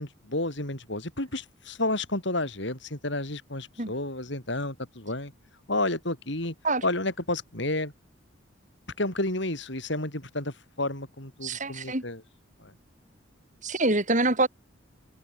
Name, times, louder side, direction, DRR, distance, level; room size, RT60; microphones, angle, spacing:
voice 1, 0.0-5.3 5.7-6.5 6.8-7.9 9.0-12.2 12.6-12.7, left 2 dB, 60° left, 4.5 m, -31 dB
voice 2, 11.4-12.0 13.6-14.5, right 2 dB, 40° right, 5.4 m, -25 dB
head